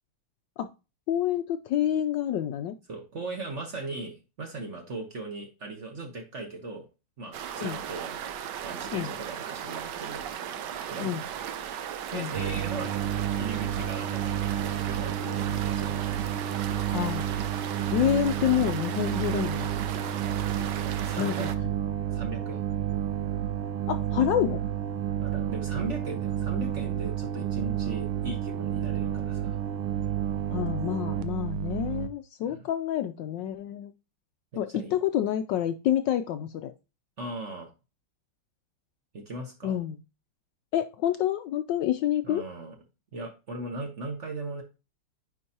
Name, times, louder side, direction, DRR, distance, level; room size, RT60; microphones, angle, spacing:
voice 1, 1.1-2.7 7.6-7.8 8.9-9.1 11.0-11.2 12.1-12.3 16.9-17.3 17.9-19.7 21.2-21.5 23.9-24.6 30.5-33.9 34.6-36.7 39.6-40.0 40.7-42.4, left 11 dB, 75° left, 9 dB, 1.1 m, -28 dB
voice 2, 2.9-6.9 7.2-8.2 8.6-10.4 10.9-11.2 12.1-13.0 13.4-16.3 21.0-21.5 22.1-22.6 25.2-29.6 32.4-32.6 34.5-35.0 37.2-37.7 39.1-39.8 42.2-42.8 43.1-44.6, right 2 dB, 40° right, 4 dB, 1.2 m, -38 dB
sound 1, 7.3-21.6, right 9 dB, 65° right, 1.2 m, -37 dB
sound 2, 12.3-32.1, right 10 dB, 85° right, 1.5 m, -30 dB
9.8 x 4.6 x 2.8 m, 0.29 s
omnidirectional pair, 2.3 m